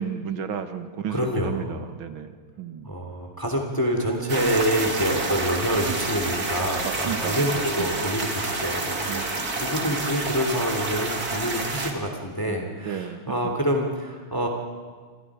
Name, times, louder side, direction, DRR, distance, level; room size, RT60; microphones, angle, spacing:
voice 1, 0.0-2.3 2.6-2.9 6.8-8.1 9.1-9.5 9.8-10.0 12.5-13.2, right 7 dB, 70° right, 9 dB, 2.2 m, -33 dB
voice 2, 1.1-1.8 2.8-14.5, equal, 10° left, 2 dB, 2.8 m, -27 dB
Wind instrument woodwind instrument, 3.7-11.0, right 1 dB, 70° left, 7.7 m, -45 dB
sound 1, 4.3-11.9, right 3 dB, 45° right, 2.8 m, -29 dB
28.0 x 26.0 x 4.9 m, 1.5 s
omnidirectional pair, 2.4 m